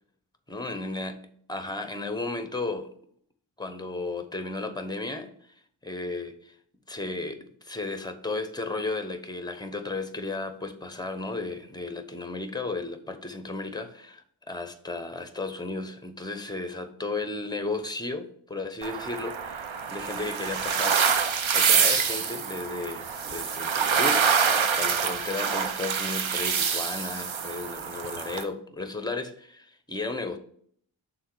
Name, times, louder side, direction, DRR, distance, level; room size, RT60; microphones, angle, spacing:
voice 1, 0.5-1.2 1.5-2.9 3.6-5.3 5.8-6.5 6.9-21.0 21.5-30.4, left 3 dB, 10° left, 0.8 m, -34 dB
sound 1, 18.8-28.4, right 6 dB, 75° right, 0.8 m, -26 dB
6.3 x 3.8 x 4.6 m
wide cardioid pair, 60°, 47 cm